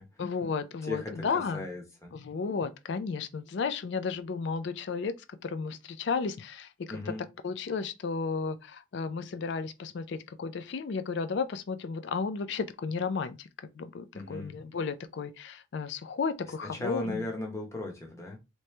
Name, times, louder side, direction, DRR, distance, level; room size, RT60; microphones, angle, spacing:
voice 1, 0.2-1.7 2.1-5.1 5.4-7.1 7.4-13.5 13.7-17.3, left 5 dB, 60° left, 0.4 m, -33 dB
voice 2, 0.8-2.2 6.9-7.2 14.1-14.5 16.6-18.4, left 2 dB, 15° left, 0.8 m, -37 dB
3.0 x 2.7 x 3.2 m
head